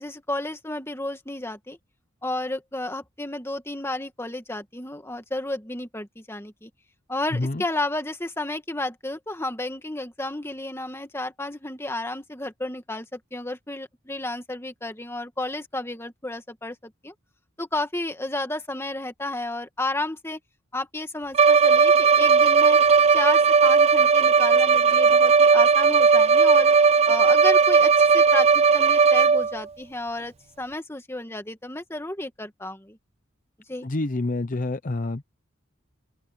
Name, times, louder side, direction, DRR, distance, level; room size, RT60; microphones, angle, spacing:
voice 1, 0.0-1.8 2.2-6.7 7.1-17.1 17.6-20.4 20.7-22.8 23.1-26.7 27.1-33.0 33.7-33.9, left 2 dB, 15° left, 1.9 m, -32 dB
voice 2, 7.3-7.6 33.8-35.2, left 2 dB, 40° left, 0.7 m, -27 dB
Bowed string instrument, 21.3-29.6, right 5 dB, 30° right, 0.3 m, -17 dB
open air
head